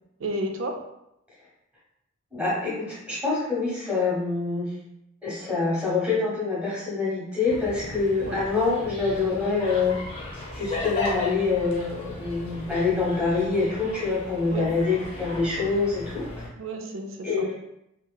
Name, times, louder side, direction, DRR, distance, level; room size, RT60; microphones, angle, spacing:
voice 1, 0.2-0.8 8.2-8.4 14.5-14.7 16.6-17.5, right 2 dB, 70° right, 4 dB, 0.4 m, -32 dB
voice 2, 2.3-4.7 5.2-9.9 10.5-16.2 17.2-17.5, left 4 dB, 5° right, -7 dB, 1.0 m, -25 dB
sound 1, 7.5-16.5, left 2 dB, 25° left, 0.6 m, -36 dB
2.9 x 2.8 x 2.2 m, 0.82 s
head